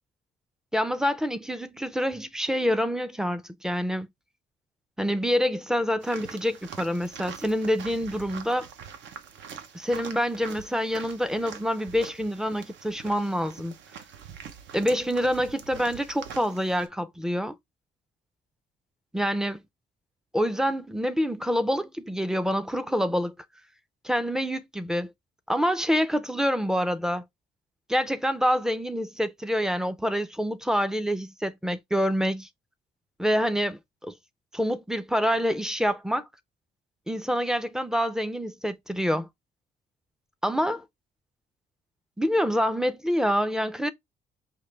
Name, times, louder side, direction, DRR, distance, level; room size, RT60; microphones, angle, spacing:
voice 1, 0.7-4.1 5.0-8.7 9.7-13.7 14.7-17.6 19.1-19.6 20.3-23.3 24.0-25.1 25.5-27.2 27.9-32.5 33.2-34.1 34.5-36.3 37.1-39.3 40.4-40.8 42.2-43.9, equal, 5° right, 0.4 m, -26 dB
sound 1, 6.0-16.9, right 7 dB, 85° right, 0.8 m, -44 dB
5.0 x 2.5 x 3.2 m
cardioid pair, 150°, 18 cm